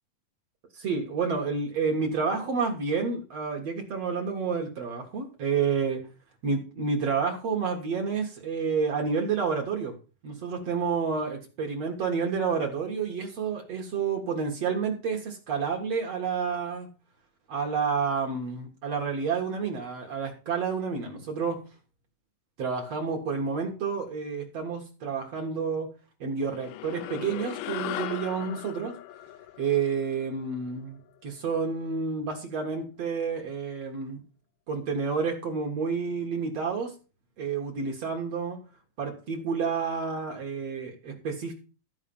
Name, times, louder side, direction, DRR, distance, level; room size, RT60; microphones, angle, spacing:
voice 1, 0.7-6.0 6.4-9.9 10.2-16.9 17.5-21.6 22.6-25.9 26.2-29.0 29.6-34.2 34.7-36.9 37.4-38.6 39.0-41.5, right 5 dB, 50° right, 1 dB, 2.6 m, -29 dB
sound 1, 26.4-31.1, left 15 dB, 75° left, 2.0 m, -38 dB
13.5 x 4.8 x 7.1 m, 0.35 s
omnidirectional pair, 4.1 m